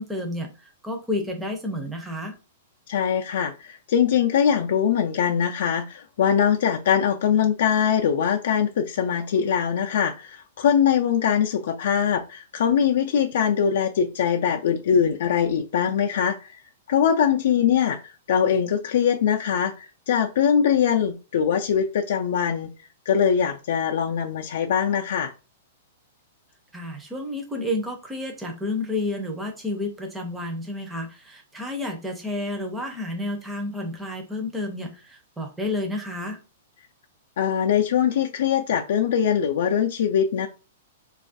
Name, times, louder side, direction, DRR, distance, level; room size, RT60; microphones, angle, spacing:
voice 1, 0.0-2.3 26.7-36.4, left 1 dB, 10° right, 0.5 m, -30 dB
voice 2, 2.9-16.5 16.9-22.7 23.1-25.3 37.4-40.5, left 8 dB, 70° left, 0.3 m, -22 dB
3.1 x 2.3 x 2.5 m
hypercardioid pair, 140°, 0 cm